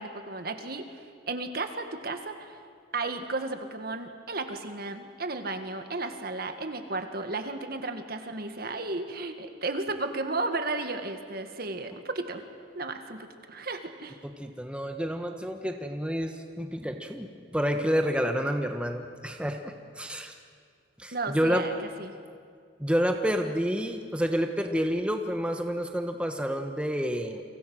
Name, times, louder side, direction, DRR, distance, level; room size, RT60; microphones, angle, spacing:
voice 1, 0.0-2.6 2.9-12.4 12.8-14.2 21.1-22.2, right 3 dB, 55° right, 7 dB, 1.8 m, -34 dB
voice 2, 14.2-20.3 21.0-21.6 22.8-27.4, equal, 5° right, 5 dB, 1.2 m, -29 dB
29.5 x 24.5 x 6.4 m, 2.2 s
head